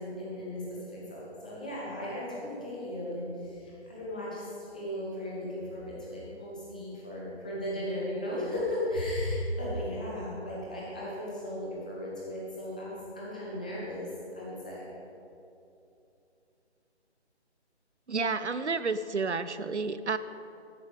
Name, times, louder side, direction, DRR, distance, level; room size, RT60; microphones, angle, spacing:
voice 1, 0.0-14.9, left 1 dB, 5° left, -6 dB, 0.8 m, -36 dB
voice 2, 18.1-20.2, right 4 dB, 80° right, 13 dB, 0.7 m, -30 dB
12.0 x 10.5 x 4.8 m, 2.7 s
figure-of-eight pair, 155°, 34 cm